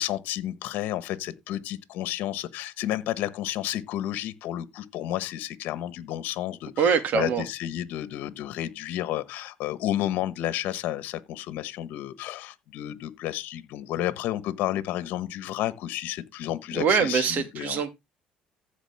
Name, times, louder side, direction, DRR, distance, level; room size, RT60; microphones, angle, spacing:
voice 1, 0.0-17.8, left 13 dB, 70° left, 1.3 m, -31 dB
voice 2, 6.8-7.4 16.7-17.9, right 6 dB, 60° right, 2.4 m, -23 dB
15.0 x 5.0 x 3.5 m
supercardioid pair, 90°, 3 cm